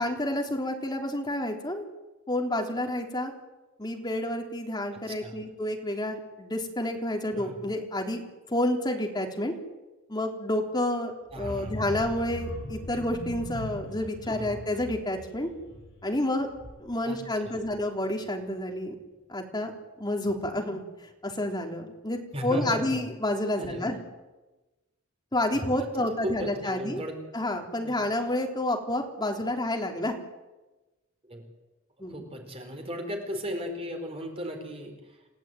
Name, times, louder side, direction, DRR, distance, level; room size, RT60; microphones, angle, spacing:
voice 1, 0.0-1.9 2.3-3.3 3.8-8.2 8.5-9.5 10.1-15.5 16.0-16.5 16.8-18.9 19.3-19.7 20.0-20.8 21.2-24.0 25.3-27.0 27.3-30.1 32.0-32.2, left 1 dB, 20° left, 2 dB, 3.6 m, -29 dB
sound 1, 11.3-17.1 17.4-17.7 18.0-18.1, equal, 65° left, 4.6 m, -40 dB
voice 2, 11.3-11.7 14.3-14.5 17.0-17.6 22.3-22.8 23.6-23.9 25.8-25.9 26.2-27.1 27.8-28.0 31.2-31.4 32.1-35.2, equal, 30° right, 4 dB, 4.5 m, -36 dB
28.5 x 16.5 x 9.3 m, 1.1 s
head